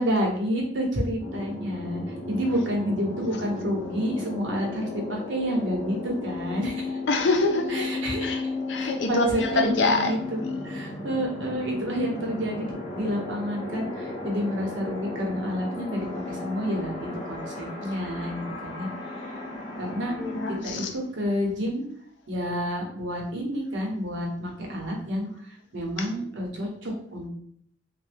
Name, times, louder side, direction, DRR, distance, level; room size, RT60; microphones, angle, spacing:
voice 1, 0.0-7.0 7.7-10.4 10.6-19.4 19.8-20.1 20.6-21.8 22.3-25.3 25.7-27.3, equal, 80° right, -1 dB, 0.9 m, -29 dB
sound 1, 1.2-20.6, left 2 dB, 30° left, 0.6 m, -35 dB
voice 2, 7.1-7.9 8.2-8.4 8.7-10.1 20.2-20.9 26.0-26.1, left 2 dB, 70° left, 4 dB, 0.5 m, -25 dB
2.9 x 2.2 x 3.2 m, 0.66 s
head